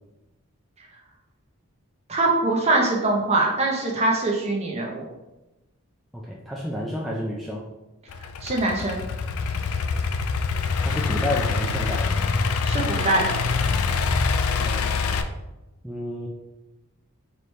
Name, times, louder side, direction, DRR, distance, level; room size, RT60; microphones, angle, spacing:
voice 1, 2.1-5.0 8.4-9.0 12.6-13.2, right 2 dB, 30° right, -1 dB, 0.7 m, -23 dB
voice 2, 6.1-7.6 10.8-12.1 14.6-15.2 15.8-16.3, left 1 dB, ahead, -5 dB, 0.3 m, -30 dB
Idling / Accelerating revving vroom, 8.1-15.2, left 4 dB, 75° left, 0.3 m, -25 dB
4.0 x 3.1 x 3.2 m, 1.0 s
head